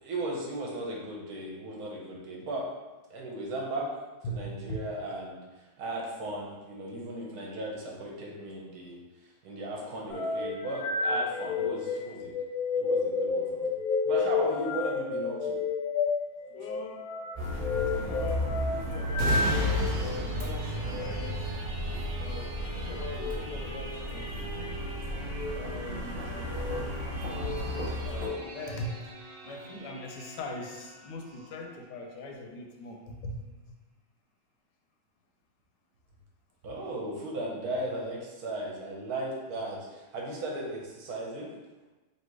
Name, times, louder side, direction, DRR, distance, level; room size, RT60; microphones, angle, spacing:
voice 1, 0.0-2.7 3.1-3.9 4.3-5.4 5.8-9.0 9.4-12.3 12.8-13.7 14.1-15.6 36.6-39.9 40.1-41.5, right 1 dB, 65° right, -2 dB, 1.2 m, -36 dB
voice 2, 4.2-4.7 16.5-17.1 17.7-19.3 20.0-21.5 22.2-24.8 25.5-26.8 27.3-27.7 28.0-28.9 29.4-33.4, left 2 dB, 85° left, 2 dB, 1.3 m, -41 dB
sound 1, 10.1-20.0 20.8-21.1 23.1-23.4 24.2-24.7 25.3-25.6 26.3-26.8 27.3-28.4, left 4 dB, 70° left, 1.0 m, -31 dB
sound 2, 17.4-28.3, equal, 35° right, 1.1 m, -34 dB
sound 3, 19.1-32.5 32.9-33.1, equal, 85° right, 1.3 m, -38 dB
3.3 x 2.8 x 4.5 m, 1.2 s
omnidirectional pair, 1.9 m